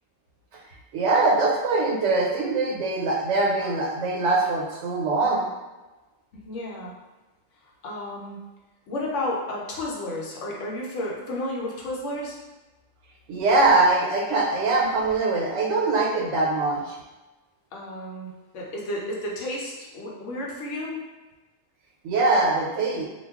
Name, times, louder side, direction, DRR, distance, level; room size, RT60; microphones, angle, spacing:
voice 1, 0.9-5.5 13.3-17.0 22.0-23.1, right 3 dB, 75° right, -2 dB, 0.9 m, -22 dB
voice 2, 6.3-6.9 7.8-8.4 8.9-12.4 17.7-21.0, left 1 dB, 75° left, -3 dB, 1.0 m, -32 dB
2.3 x 2.2 x 3.5 m, 1.1 s
omnidirectional pair, 1.3 m